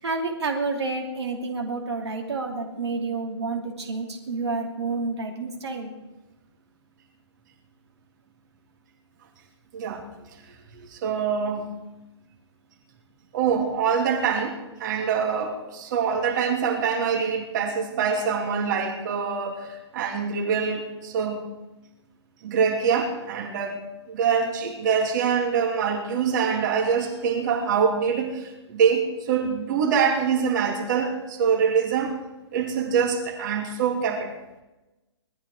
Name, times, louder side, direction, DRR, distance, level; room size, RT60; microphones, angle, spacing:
voice 1, 0.0-5.9, right 3 dB, 60° right, 1 dB, 2.8 m, -29 dB
voice 2, 9.7-10.0 10.7-11.7 13.3-21.5 22.4-23.8 24.1-32.2 32.5-34.3, right 6 dB, 40° right, 1 dB, 2.8 m, -24 dB
19.0 x 13.0 x 4.9 m, 1.0 s
figure-of-eight pair, 130°, 15 cm